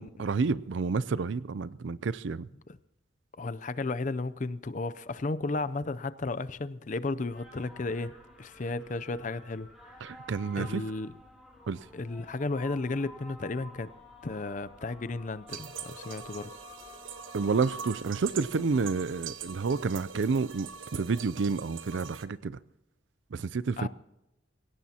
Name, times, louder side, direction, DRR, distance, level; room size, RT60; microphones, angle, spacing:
voice 1, 0.0-2.5 10.0-10.8 11.7-11.8 17.3-22.5 23.3-23.9, right 4 dB, 70° right, 0.4 m, -30 dB
voice 2, 3.4-8.1 8.4-9.7 10.6-11.2 11.9-13.9 14.2-16.5 23.8-23.9, left 3 dB, 40° left, 0.5 m, -34 dB
sound 1, 7.3-20.8, left 1 dB, ahead, 4.0 m, -52 dB
sound 2, 15.5-22.3, right 7 dB, 85° right, 1.1 m, -43 dB
25.5 x 16.5 x 2.9 m
head